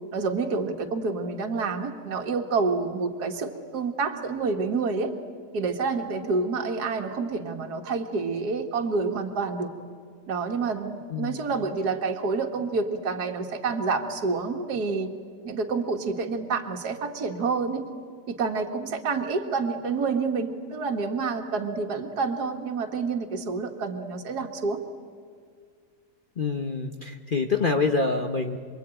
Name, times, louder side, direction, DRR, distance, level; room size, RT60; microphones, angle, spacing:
voice 1, 0.1-5.1 5.5-9.7 10.3-15.1 15.4-17.9 18.3-24.8, right 4 dB, 70° right, 3 dB, 2.1 m, -28 dB
voice 2, 26.4-28.6, left 4 dB, 35° left, 5 dB, 1.0 m, -26 dB
27.5 x 22.5 x 9.0 m, 2.1 s
omnidirectional pair, 1.7 m